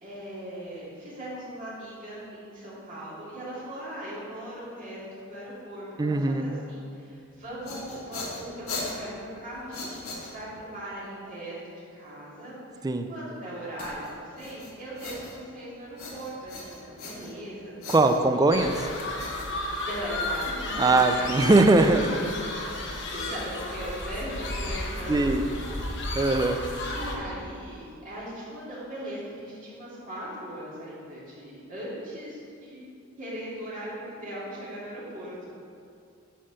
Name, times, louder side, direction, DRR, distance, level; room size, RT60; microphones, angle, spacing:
voice 1, 0.0-17.8 18.1-18.4 19.5-21.5 22.6-25.6 26.9-32.9 33.2-35.5, right 1 dB, 40° right, -8 dB, 2.3 m, -39 dB
voice 2, 6.0-6.5 12.8-13.1 17.9-18.7 20.8-22.1 25.1-25.4 26.2-26.6, right 2 dB, 20° right, 7 dB, 0.4 m, -21 dB
sound 1, 7.3-10.7 13.8-15.6 16.0-17.5 17.8-20.1, left 2 dB, 80° left, 1.5 m, -39 dB
sound 2, 18.5-27.2, left 2 dB, 60° left, 1.0 m, -33 dB
9.0 x 4.4 x 6.2 m, 2.4 s
head